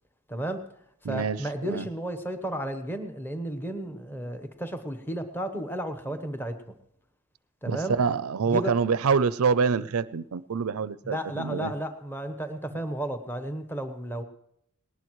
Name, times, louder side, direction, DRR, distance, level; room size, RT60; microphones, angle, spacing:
voice 1, 0.3-0.6 1.1-6.8 7.6-8.0 8.5-8.7 11.0-14.2, right 1 dB, 10° left, 8 dB, 1.0 m, -33 dB
voice 2, 1.0-1.9 7.7-11.7, right 5 dB, 80° right, 16 dB, 0.5 m, -26 dB
19.0 x 19.0 x 3.1 m, 0.73 s
head